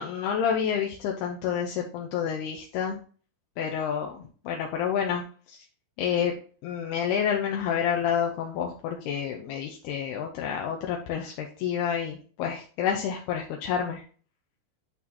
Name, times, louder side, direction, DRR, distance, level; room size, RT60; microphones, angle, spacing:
voice 1, 0.0-3.0 3.6-4.1 4.5-5.6 6.0-6.3 6.6-14.0, left 8 dB, 80° left, 1 dB, 2.5 m, -29 dB
11.0 x 4.3 x 2.8 m, 0.41 s
omnidirectional pair, 5.2 m